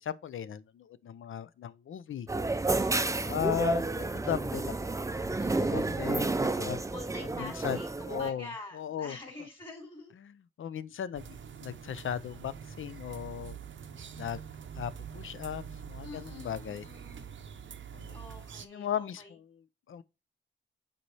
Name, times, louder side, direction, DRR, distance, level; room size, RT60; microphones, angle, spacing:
voice 1, 0.0-2.3 3.2-4.9 5.6-6.8 7.4-7.8 8.1-9.2 10.2-13.6 14.2-14.4 14.8-16.9 17.9-18.2 18.6-20.0, left 9 dB, 80° left, 0.5 m, -37 dB
sound 1, 2.3-8.3, right 2 dB, 15° right, 0.4 m, -30 dB
voice 2, 5.4-6.2 6.9-10.1 16.0-17.3 18.1-19.3, left 2 dB, 25° left, 2.7 m, -47 dB
sound 2, 11.1-18.7, right 7 dB, 70° right, 0.6 m, -45 dB
8.1 x 4.1 x 3.2 m
wide cardioid pair, 95°, 20 cm